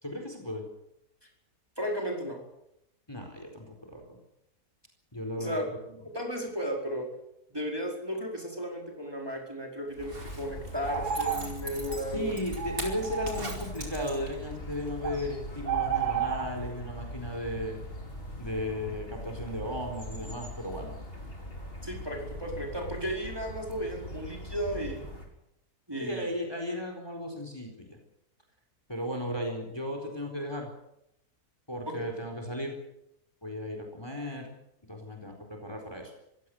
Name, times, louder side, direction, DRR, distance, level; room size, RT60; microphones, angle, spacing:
voice 1, 0.0-0.6 3.1-4.2 5.1-5.6 12.1-17.8 18.4-20.9 26.0-27.9 28.9-30.7 31.7-32.8 33.4-34.6 34.9-36.1, left 1 dB, 15° left, 4 dB, 4.2 m, -35 dB
voice 2, 1.8-2.4 5.4-5.7 6.1-7.1 7.5-12.3 21.8-25.0 25.9-26.3 31.9-32.1, equal, 15° right, 0 dB, 4.8 m, -34 dB
Zipper (clothing), 9.9-14.5 14.9-15.0, right 2 dB, 60° right, 5.1 m, -42 dB
sound 1, 10.0-25.3, left 1 dB, 35° left, 4.9 m, -41 dB
sound 2, 10.8-11.5 11.9-12.0 12.6-13.5 15.0-15.2 15.7-16.5, right 8 dB, 80° right, 2.5 m, -31 dB
25.5 x 16.5 x 7.9 m, 0.82 s
omnidirectional pair, 1.6 m